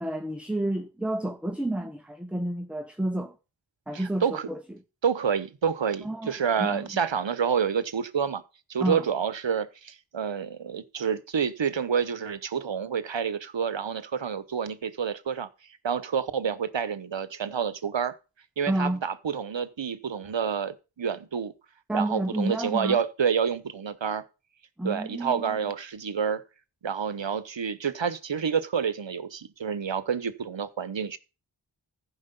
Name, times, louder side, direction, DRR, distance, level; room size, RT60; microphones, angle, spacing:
voice 1, 0.0-3.4 3.9-4.6 6.0-6.3 6.6-6.8 8.8-9.0 18.7-19.0 21.9-23.0 24.8-25.6, right 1 dB, 5° right, 0.8 m, -30 dB
voice 2, 3.9-4.5 5.0-8.4 8.7-15.5 15.8-18.1 18.6-21.5 21.9-24.2 24.8-26.4 26.8-31.2, right 7 dB, 70° right, 1.0 m, -28 dB
15.0 x 5.0 x 5.3 m
wide cardioid pair, 65°, 46 cm